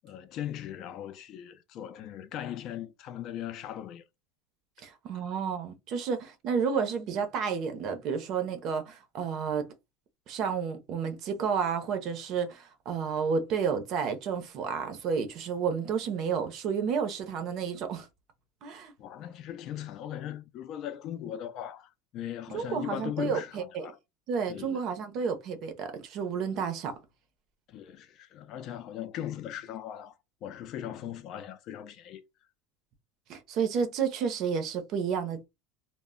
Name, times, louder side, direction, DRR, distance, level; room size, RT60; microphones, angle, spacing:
voice 1, 0.0-4.0 19.0-24.0 24.5-24.8 27.7-30.1 30.4-32.2, left 11 dB, 40° left, 0.4 m, -39 dB
voice 2, 4.8-9.7 10.3-18.1 18.6-18.9 22.5-23.9 24.3-27.0 33.3-35.5, right 6 dB, 40° right, 0.6 m, -31 dB
2.1 x 2.0 x 3.6 m
supercardioid pair, 150°, 0 cm